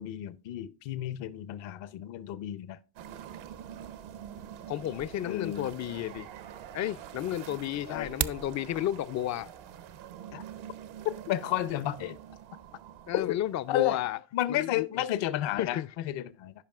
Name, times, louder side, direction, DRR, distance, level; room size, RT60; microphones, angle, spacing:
voice 1, 0.0-2.8 5.2-5.7 7.9-8.1 10.3-10.4 11.3-12.2 13.1-13.3 13.7-14.0 14.3-16.5, left 13 dB, 65° left, 0.7 m, -32 dB
sound 1, 3.0-14.1, right 9 dB, 80° right, 0.9 m, -46 dB
voice 2, 4.7-6.3 6.7-9.5 13.1-14.2 14.5-14.9 15.6-15.9, left 12 dB, 40° left, 0.4 m, -32 dB
sound 2, 7.9-8.5, right 10 dB, 40° right, 0.4 m, -32 dB
15.5 x 5.2 x 2.4 m
supercardioid pair, 75°, 48 cm